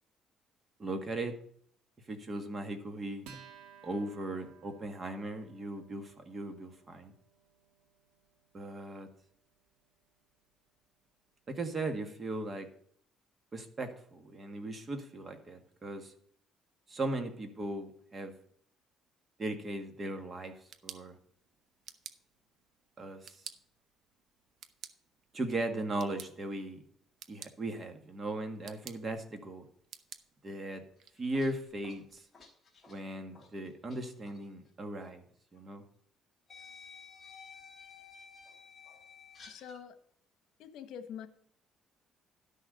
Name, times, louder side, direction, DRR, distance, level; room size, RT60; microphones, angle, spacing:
voice 1, 0.8-1.3 2.1-3.3 3.8-7.1 8.5-9.1 11.5-12.7 13.5-16.1 16.9-18.3 19.4-20.5 20.8-21.2 23.0-23.4 25.3-26.8 27.3-29.7 30.4-30.8 31.2-32.2 32.9-35.2 35.5-35.8, right 2 dB, 30° right, 6 dB, 1.8 m, -38 dB
Acoustic guitar, 3.2-10.1, right 7 dB, 90° right, 2.0 m, -58 dB
sound 1, 20.4-32.2, right 8 dB, 55° right, 0.9 m, -54 dB
sound 2, 31.0-34.0 34.2-34.4 35.6-35.7 36.5-39.8, left 5 dB, 25° left, 3.8 m, -53 dB
voice 2, 39.5-39.9 40.6-41.3, left 8 dB, 75° left, 11 dB, 1.1 m, -45 dB
11.5 x 6.5 x 5.2 m, 0.62 s
cardioid pair, 130°, 0 cm